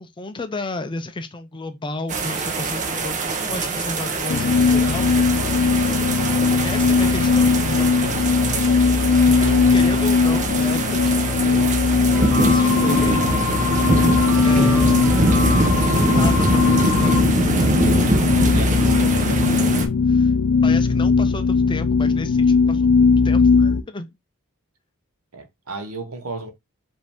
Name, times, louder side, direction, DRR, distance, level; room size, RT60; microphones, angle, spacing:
voice 1, 0.0-5.2 6.6-12.0 12.4-13.4 14.4-15.0 15.5-17.9 19.7-20.3 20.6-24.1, left 2 dB, 20° left, 0.5 m, -32 dB
sound 1, 2.1-19.9, right 2 dB, 35° right, 0.7 m, -23 dB
sound 2, 4.3-23.8, left 5 dB, 80° left, 0.5 m, -19 dB
voice 2, 9.4-10.0 18.5-19.5 25.3-26.5, right 3 dB, 80° right, 1.0 m, -33 dB
sound 3, 12.1-17.2, left 5 dB, 5° left, 1.1 m, -28 dB
5.1 x 2.7 x 3.4 m
head